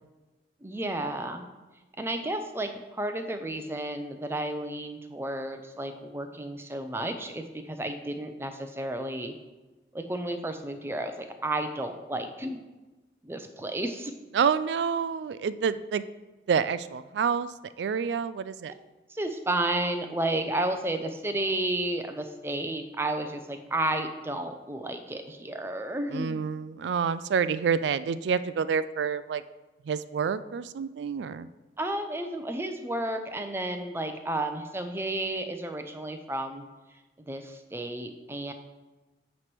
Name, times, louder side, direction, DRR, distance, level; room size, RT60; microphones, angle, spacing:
voice 1, 0.6-1.4 2.0-9.3 9.9-12.6 13.2-14.1 19.1-26.4 31.8-36.6 37.2-38.5, right 1 dB, 15° right, 6 dB, 0.5 m, -32 dB
voice 2, 14.3-16.0 16.5-17.5 17.8-18.7 26.1-29.4 29.9-31.5, right 6 dB, 80° right, 14 dB, 0.3 m, -28 dB
8.9 x 3.2 x 6.0 m, 1.2 s
head